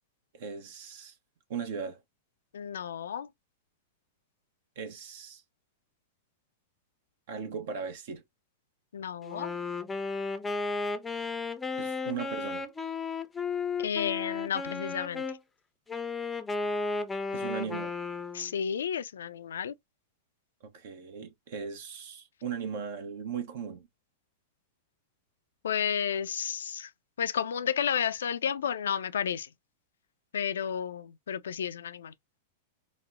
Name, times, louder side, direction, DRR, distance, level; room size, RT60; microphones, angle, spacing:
voice 1, 0.3-1.1 1.5-2.0 4.8-5.4 7.3-8.2 11.7-12.6 17.3-17.9 20.6-23.9, right 6 dB, 60° right, 0.8 m, -38 dB
voice 2, 2.5-3.3 8.9-9.5 13.8-15.2 18.3-19.7 25.6-26.9 27.2-29.5 30.3-32.1, left 8 dB, 75° left, 0.3 m, -32 dB
Wind instrument woodwind instrument, 9.2-15.4 15.9-18.5, left 4 dB, 15° left, 0.5 m, -34 dB
4.0 x 2.1 x 2.3 m
hypercardioid pair, 100°, 0 cm